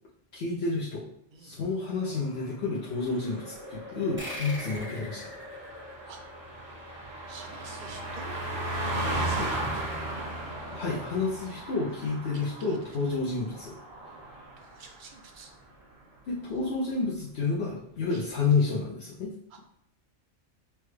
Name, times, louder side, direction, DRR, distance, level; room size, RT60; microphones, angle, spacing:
voice 1, 0.3-1.0 1.4-5.3 9.4-9.5 10.7-13.8 16.3-19.3, left 4 dB, 65° left, -6 dB, 0.9 m, -30 dB
sound 1, 1.8-11.1, equal, 85° left, 1.2 m, -47 dB
Car passing by, 3.0-15.0 15.3-15.5, right 1 dB, 80° right, 1.4 m, -36 dB
sound 2, 4.2-7.2, equal, 10° right, 0.7 m, -42 dB
voice 2, 7.3-8.4 9.0-10.0 11.9-12.0 12.3-13.2 14.6-15.5 16.4-16.9 18.1-18.3 19.5-19.6, right 4 dB, 50° right, 4 dB, 0.7 m, -49 dB
5.8 x 2.2 x 3.2 m, 0.73 s
omnidirectional pair, 1.2 m